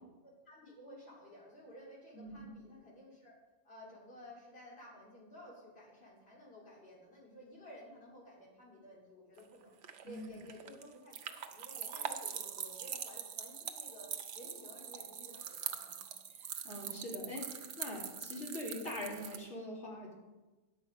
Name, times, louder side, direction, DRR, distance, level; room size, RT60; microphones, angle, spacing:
voice 1, 0.2-3.4 3.6-9.7 10.0-14.1 14.3-16.1, equal, 60° left, -6 dB, 3.3 m, -54 dB
voice 2, 2.1-2.5 10.0-10.3 16.4-20.1, left 1 dB, 85° left, -3 dB, 2.8 m, -43 dB
sound 1, 9.4-19.4, right 8 dB, 90° right, 1.0 m, -43 dB
10.0 x 7.1 x 5.0 m, 1.2 s
omnidirectional pair, 1.2 m